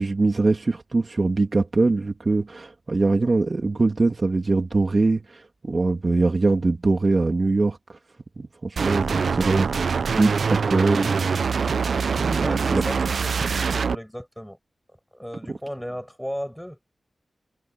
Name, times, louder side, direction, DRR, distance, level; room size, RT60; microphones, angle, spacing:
voice 1, 0.0-7.8 8.4-11.4 12.2-12.8 15.5-15.6, right 3 dB, 45° right, 3.0 m, -23 dB
sound 1, 8.8-13.9, right 5 dB, 75° right, 0.6 m, -24 dB
voice 2, 12.4-14.6 15.1-16.8, equal, ahead, 6.0 m, -35 dB
wide cardioid pair, 75°, 0 cm